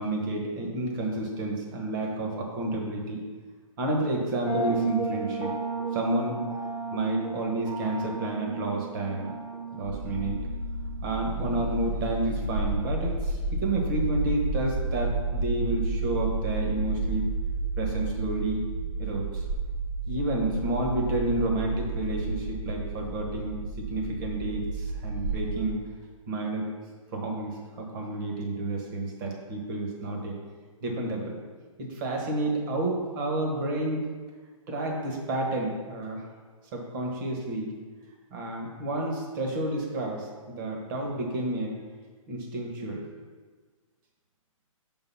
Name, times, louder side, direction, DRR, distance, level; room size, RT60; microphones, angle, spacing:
voice 1, 0.0-3.2 3.8-5.5 5.9-6.4 6.9-9.3 9.7-10.4 11.0-17.3 17.8-18.6 19.0-19.5 20.1-25.8 26.3-26.6 27.1-30.3 30.8-31.4 31.8-34.0 34.7-36.3 36.7-37.7 38.3-41.7 42.3-43.0, right 2 dB, 35° right, 0 dB, 1.3 m, -30 dB
sound 1, 4.5-12.1, right 4 dB, 20° right, 1.0 m, -34 dB
sound 2, 9.8-25.7, right 3 dB, 70° right, 1.0 m, -31 dB
5.2 x 4.0 x 5.6 m, 1.4 s
hypercardioid pair, 140°, 18 cm